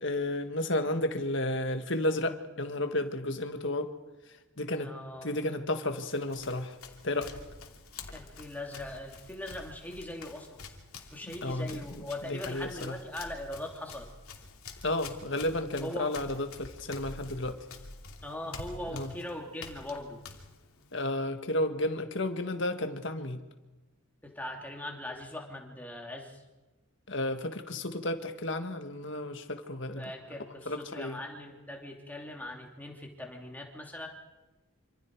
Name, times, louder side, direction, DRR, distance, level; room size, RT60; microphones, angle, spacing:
voice 1, 0.0-3.9 4.6-4.9 5.2-6.7 7.0-7.3 11.4-12.0 12.3-13.0 14.8-17.6 18.9-19.1 20.9-23.4 27.1-30.1 30.7-31.2, left 1 dB, 55° left, 7 dB, 1.8 m, -32 dB
voice 2, 4.8-5.3 8.1-10.6 11.1-14.1 15.8-16.1 18.2-20.2 24.2-26.4 29.9-34.1, left 1 dB, 10° left, 1 dB, 3.0 m, -40 dB
Run, 5.9-21.1, left 4 dB, 85° left, 2.9 m, -48 dB
27.0 x 26.5 x 4.8 m, 1.1 s
head